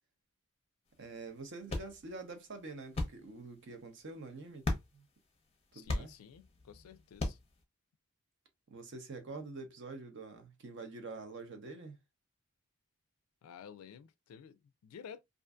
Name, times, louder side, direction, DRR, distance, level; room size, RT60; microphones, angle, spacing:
sound 1, 0.9-7.6, left 2 dB, 30° left, 0.5 m, -41 dB
voice 1, 1.0-4.7 4.9-5.1 5.7-6.1 8.7-12.0, right 3 dB, 55° right, 0.6 m, -46 dB
voice 2, 5.7-7.4 13.4-15.2, left 7 dB, 75° left, 0.3 m, -52 dB
2.5 x 2.5 x 2.2 m
head